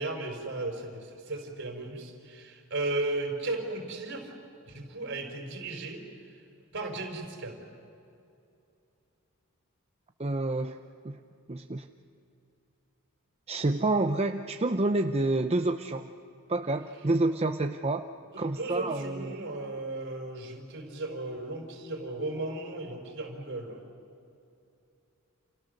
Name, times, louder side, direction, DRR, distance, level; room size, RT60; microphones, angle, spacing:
voice 1, 0.0-4.3 4.7-6.4 6.7-7.6 18.3-23.8, right 2 dB, 60° right, 4 dB, 4.4 m, -35 dB
voice 2, 10.2-11.2 11.5-11.9 13.5-16.1 16.5-18.1 18.4-19.4, right 2 dB, 30° right, 6 dB, 0.7 m, -28 dB
30.0 x 28.5 x 6.6 m, 2.7 s
head